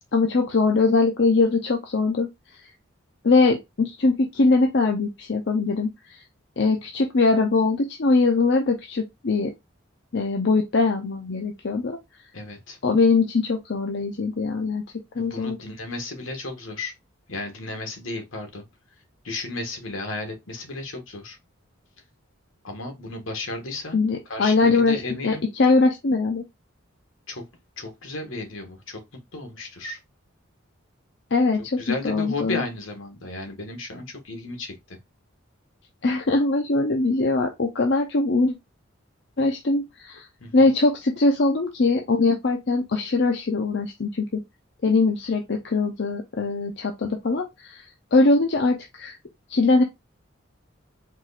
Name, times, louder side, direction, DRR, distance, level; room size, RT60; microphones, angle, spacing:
voice 1, 0.1-2.3 2.6-2.7 3.2-6.2 6.6-9.5 10.1-12.0 12.8-14.8 15.2-15.6 23.9-26.4 31.3-32.6 36.0-38.5 39.4-40.3 40.5-44.4 44.8-49.2 49.5-49.8, left 3 dB, 60° left, 0.6 m, -22 dB
voice 2, 12.3-12.8 15.1-16.9 17.3-18.6 19.2-21.4 22.6-24.0 24.3-25.4 27.3-27.4 27.8-29.0 29.3-30.0 31.8-35.0 40.4-40.7, left 2 dB, 80° left, 1.4 m, -34 dB
4.6 x 2.4 x 4.1 m
head